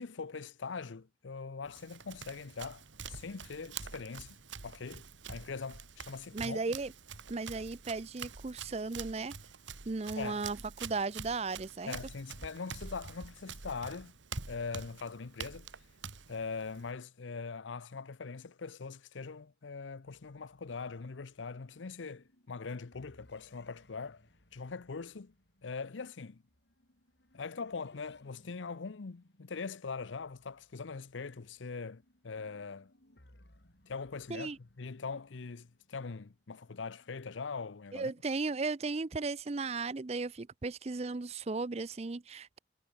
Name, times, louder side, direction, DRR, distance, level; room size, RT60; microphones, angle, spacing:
voice 1, 0.0-4.4 4.6-6.6 10.2-10.4 11.9-14.1 14.5-15.7 16.3-24.2 24.5-25.3 25.6-26.4 27.3-32.9 33.9-34.5 34.8-38.1, left 4 dB, 90° left, 0.7 m, -42 dB
Run, 1.6-16.9, right 5 dB, 85° right, 1.9 m, -46 dB
voice 2, 6.3-6.9 7.3-9.3 9.9-11.9 34.3-34.6 37.9-42.6, right 3 dB, 35° right, 0.5 m, -36 dB
sound 1, 20.1-37.5, left 1 dB, 65° left, 4.3 m, -66 dB
head